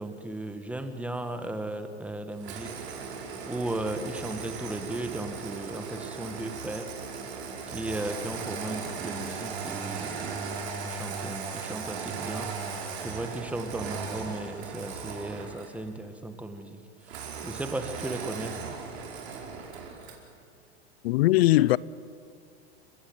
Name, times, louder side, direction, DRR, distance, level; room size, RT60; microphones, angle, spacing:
voice 1, 0.0-2.7 3.5-6.9 7.7-10.3 10.8-12.5 13.0-16.8 17.1-18.6, right 1 dB, 5° right, 1.7 m, -36 dB
Engine starting, 2.4-15.8 17.1-20.3, right 5 dB, 75° right, 5.1 m, -37 dB
voice 2, 21.0-21.8, left 17 dB, 65° left, 0.6 m, -20 dB
30.0 x 16.0 x 8.9 m
hypercardioid pair, 125°, 33 cm